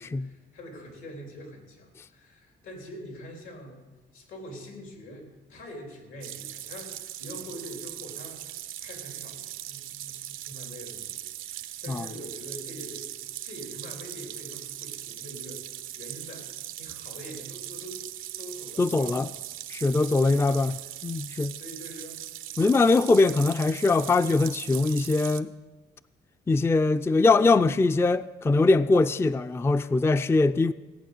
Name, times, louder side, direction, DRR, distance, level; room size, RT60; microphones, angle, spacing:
voice 1, 0.0-8.4 8.8-13.1 13.4-16.5 16.8-18.0 18.4-19.2 20.0-20.7 21.6-22.2, equal, 85° left, 3.9 m, -44 dB
sound 1, 6.2-25.4, right 13 dB, 90° right, 0.7 m, -40 dB
voice 2, 18.8-19.3 19.7-20.7 21.0-21.5 22.6-25.5 26.5-30.7, left 3 dB, 10° left, 0.4 m, -22 dB
17.0 x 8.6 x 6.7 m
cardioid pair, 90°, 20 cm